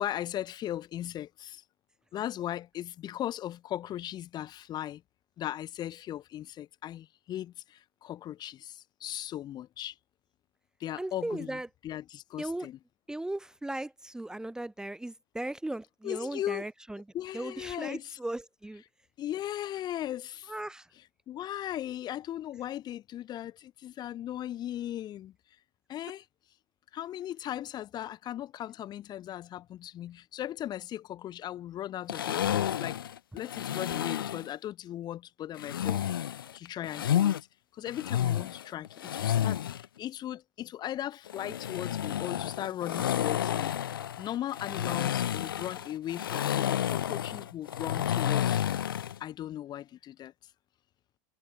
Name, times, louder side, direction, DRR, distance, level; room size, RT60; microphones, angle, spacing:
voice 1, 0.0-1.6 2.1-5.0 5.4-10.0 10.8-12.8 16.0-16.7 17.1-18.2 19.2-20.5 21.0-25.3 25.9-26.2 26.9-33.0 33.3-37.4 37.7-43.7 44.2-48.8 49.2-50.3, left 12 dB, 35° left, 2.1 m, -38 dB
voice 2, 11.0-11.7 12.4-12.7 13.1-17.0 17.3-18.8 20.5-20.9, right 1 dB, 5° right, 1.3 m, -37 dB
sound 1, 32.1-34.5 35.6-37.4 37.9-39.9 41.3-49.2, left 10 dB, 75° left, 0.4 m, -30 dB
figure-of-eight pair, 80°, 12 cm